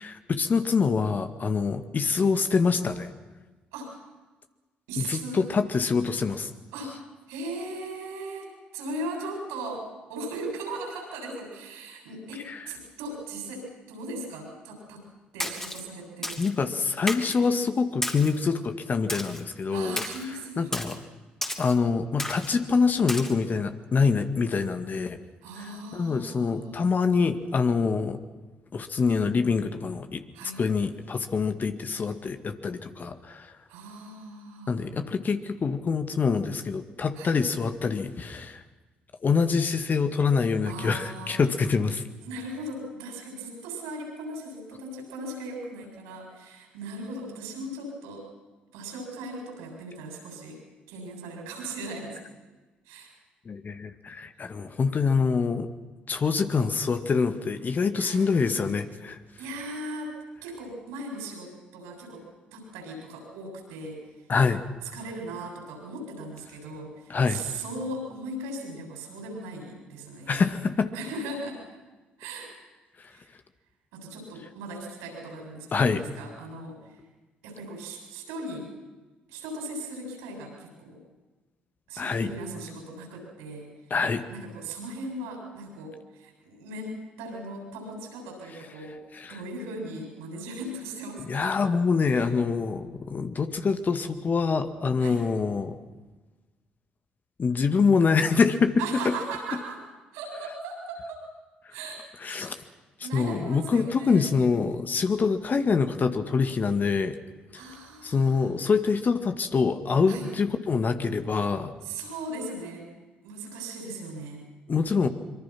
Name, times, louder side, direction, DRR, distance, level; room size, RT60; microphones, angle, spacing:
voice 1, 0.0-3.1 5.0-6.5 12.5-12.7 16.4-20.0 20.6-21.0 21.6-25.2 25.9-28.2 28.7-30.2 30.6-33.5 34.7-38.6 39.2-42.0 53.5-55.7 56.1-59.2 64.3-64.6 67.1-67.4 70.3-70.9 75.7-76.0 82.0-82.3 83.9-84.2 89.2-89.4 91.3-95.8 97.4-99.1 102.2-102.6 103.1-107.2 107.5-107.6 108.0-111.8 114.7-115.1, left 5 dB, 40° left, 8 dB, 2.0 m, -25 dB
voice 2, 4.9-5.6 6.7-7.0 7.3-15.1 15.3-16.8 19.7-20.8 25.4-26.9 30.3-30.6 33.7-34.8 37.2-37.4 40.6-41.3 42.2-48.3 48.7-50.6 50.9-52.2 52.9-53.1 58.0-58.3 59.4-60.1 60.4-62.2 62.5-64.0 64.8-70.4 70.9-71.6 72.2-72.5 73.1-73.3 73.9-77.0 77.4-78.7 79.3-81.0 81.9-83.7 84.3-89.0 89.3-91.6 92.1-92.3 95.0-95.2 98.8-99.8 100.1-101.3 101.7-102.6 103.0-104.3 107.5-108.5 110.1-110.3 111.8-112.9 113.2-114.4, right 2 dB, 75° right, 2 dB, 7.4 m, -38 dB
Splash splatter, 15.4-15.8 16.2-16.5 17.1-17.4 18.0-18.4 19.1-19.4 20.0-20.2 20.7-21.0 21.4-21.7 22.2-22.6 23.1-23.3, left 1 dB, 10° left, 3.3 m, -33 dB
25.0 x 23.5 x 6.1 m, 1.2 s
hypercardioid pair, 50°, 4 cm